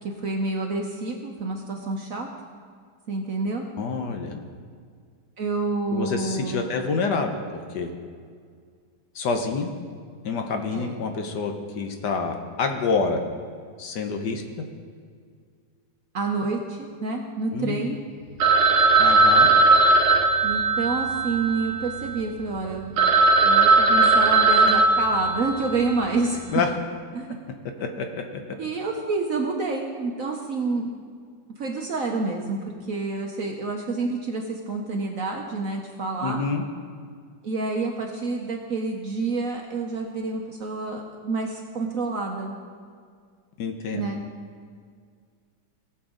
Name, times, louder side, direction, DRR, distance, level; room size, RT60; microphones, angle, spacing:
voice 1, 0.0-2.3 3.1-3.6 5.4-6.7 10.7-10.9 16.1-18.0 20.4-23.0 23.4-26.4 27.1-27.4 28.6-30.9 31.6-36.5 37.4-42.6 43.9-44.2, right 3 dB, 55° right, 1 dB, 1.0 m, -28 dB
voice 2, 3.8-4.4 5.9-7.9 9.1-9.7 10.2-13.2 13.8-14.4 17.5-18.0 19.0-19.5 26.5-26.7 27.8-28.2 36.2-36.6 43.6-44.1, left 4 dB, 65° left, 5 dB, 1.4 m, -27 dB
Telephone, 18.4-22.2 22.7-22.8 23.0-25.8, right 3 dB, 90° right, 1.8 m, -18 dB
18.5 x 7.0 x 3.8 m, 2.1 s
omnidirectional pair, 2.1 m